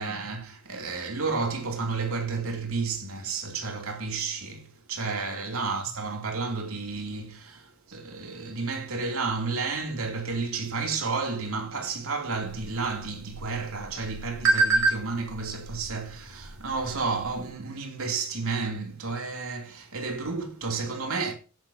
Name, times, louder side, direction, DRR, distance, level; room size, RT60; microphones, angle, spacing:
voice 1, 0.0-21.3, right 4 dB, 80° right, 2.9 m, -31 dB
sound 1, 12.4-17.5, right 3 dB, 65° right, 5.2 m, -30 dB
16.5 x 9.7 x 2.8 m
head